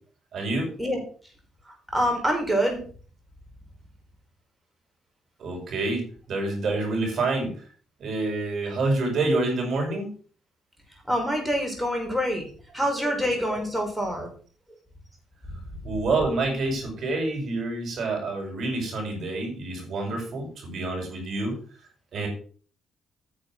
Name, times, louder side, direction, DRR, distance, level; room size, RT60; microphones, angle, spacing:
voice 1, 0.3-0.7 5.4-7.5 8.0-10.1 13.0-13.1 15.8-21.6 22.1-22.3, right 2 dB, 60° right, 1 dB, 6.9 m, -27 dB
voice 2, 1.9-2.8 11.1-12.4 12.7-14.3, equal, 10° right, 2 dB, 5.5 m, -25 dB
9.9 x 6.8 x 6.4 m, 0.41 s
cardioid pair, 90°, 0 cm